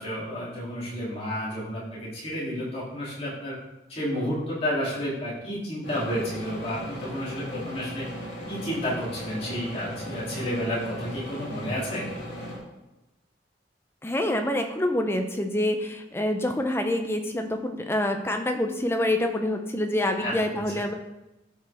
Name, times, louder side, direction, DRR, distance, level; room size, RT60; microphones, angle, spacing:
voice 1, 0.0-3.5 3.9-8.1 8.5-12.0 20.2-20.4, equal, 35° left, -8 dB, 3.1 m, -31 dB
sound 1, 5.8-12.6, equal, 70° left, 2.9 m, -37 dB
voice 2, 14.0-20.9, left 1 dB, 15° left, 5 dB, 0.6 m, -26 dB
11.5 x 5.3 x 3.5 m, 0.97 s
head